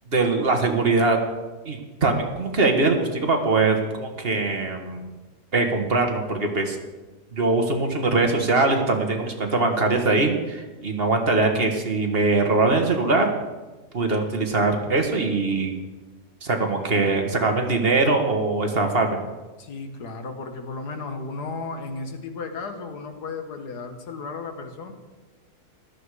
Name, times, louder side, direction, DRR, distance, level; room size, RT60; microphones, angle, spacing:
voice 1, 0.1-1.2 1.6-5.0 5.5-6.8 7.3-13.3 13.9-15.7 16.4-19.2, right 3 dB, 40° right, 4 dB, 1.5 m, -22 dB
voice 2, 19.6-24.9, left 4 dB, 75° left, 6 dB, 1.9 m, -34 dB
15.0 x 12.0 x 4.9 m, 1.2 s
omnidirectional pair, 1.8 m